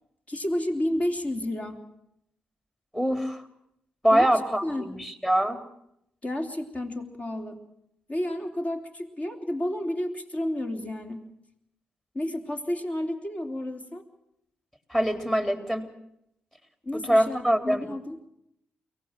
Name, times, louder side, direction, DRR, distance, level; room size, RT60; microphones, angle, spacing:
voice 1, 0.3-1.8 4.1-4.3 4.6-4.9 6.2-7.6 8.1-11.2 12.1-14.1 16.8-18.2, left 1 dB, 35° left, 4 dB, 3.5 m, -31 dB
voice 2, 2.9-3.5 4.0-5.6 14.9-15.9 16.9-17.9, equal, 10° left, 8 dB, 3.6 m, -24 dB
23.0 x 18.0 x 7.6 m, 0.76 s
hypercardioid pair, 45°, 4 cm